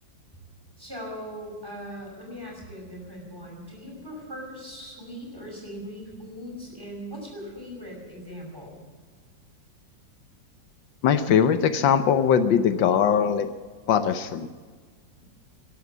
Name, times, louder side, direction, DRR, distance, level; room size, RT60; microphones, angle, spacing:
voice 1, 0.8-8.8, equal, 10° right, -1 dB, 5.8 m, -40 dB
voice 2, 11.0-13.5 13.9-14.5, left 8 dB, 80° left, 10 dB, 1.6 m, -21 dB
14.0 x 11.0 x 9.4 m, 1.5 s
omnidirectional pair, 2.0 m